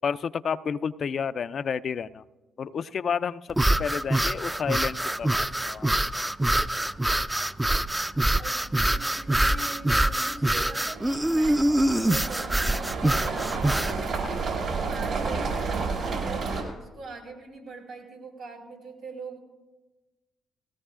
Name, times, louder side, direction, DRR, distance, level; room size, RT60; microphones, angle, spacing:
voice 1, 0.0-2.2 2.6-5.9, left 6 dB, 55° left, 14 dB, 0.4 m, -30 dB
sound 1, 3.5-14.0, right 1 dB, 15° right, 0.5 m, -25 dB
voice 2, 8.3-13.8 14.2-15.5 15.9-19.4, right 3 dB, 85° right, -4 dB, 5.0 m, -42 dB
sound 2, 10.0-10.1 10.5-16.6, right 4 dB, 65° right, 4.7 m, -31 dB
19.0 x 16.5 x 2.4 m, 1.2 s
hypercardioid pair, 50°, 0 cm